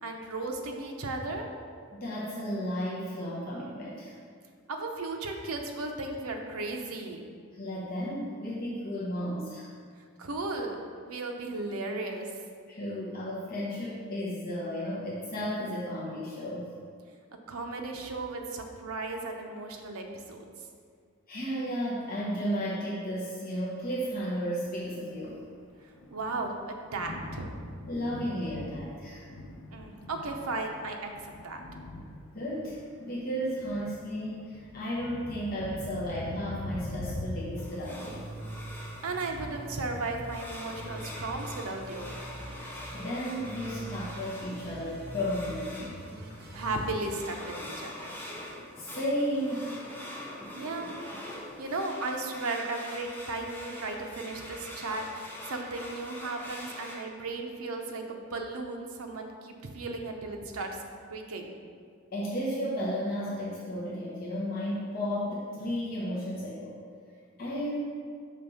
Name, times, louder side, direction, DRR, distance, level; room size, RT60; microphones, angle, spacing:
voice 1, 0.0-1.5 4.7-7.2 10.2-12.3 17.5-20.5 26.1-26.6 26.9-27.5 29.7-31.6 39.0-42.1 46.5-48.1 50.5-50.9 51.6-60.8 61.1-61.5, right 2 dB, 75° right, 3 dB, 0.7 m, -35 dB
voice 2, 1.9-4.2 7.5-9.7 12.7-16.7 21.3-25.4 27.9-29.2 32.3-38.3 42.9-46.0 48.8-49.8 50.9-51.0 62.1-66.7 67.4-67.8, equal, 40° left, -7 dB, 0.8 m, -33 dB
Thunder, 24.0-37.7, left 2 dB, 70° left, 0.7 m, -43 dB
sound 1, 36.4-37.5 38.0-40.4 40.7-47.0, right 1 dB, 45° right, 0.7 m, -43 dB
sound 2, 37.5-57.0, left 1 dB, 10° left, 0.5 m, -44 dB
5.3 x 3.4 x 5.5 m, 2.1 s
head